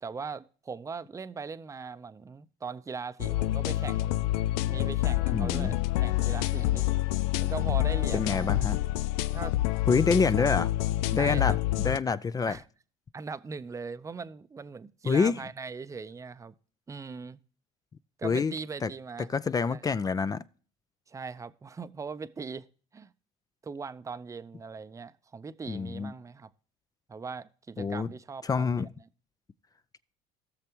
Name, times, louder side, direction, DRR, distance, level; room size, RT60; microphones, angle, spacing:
voice 1, 0.0-4.1 4.7-6.9 7.4-8.6 9.3-9.6 10.4-10.5 11.2-11.6 12.5-12.6 13.1-16.6 16.9-17.4 18.2-19.3 19.7-19.8 21.1-22.7 22.9-23.1 23.6-26.5 27.1-28.9, right 5 dB, 20° right, 0.6 m, -40 dB
sound 1, 3.2-12.0, left 15 dB, 90° left, 0.4 m, -27 dB
voice 2, 5.3-5.7 8.1-8.8 9.9-10.7 11.1-11.6 11.8-12.6 15.1-15.4 18.2-18.5 18.8-18.9 19.3-20.4 25.7-26.1 27.8-28.1 28.4-28.9, left 5 dB, 25° left, 0.4 m, -26 dB
17.0 x 6.6 x 2.9 m
supercardioid pair, 95°, 16 cm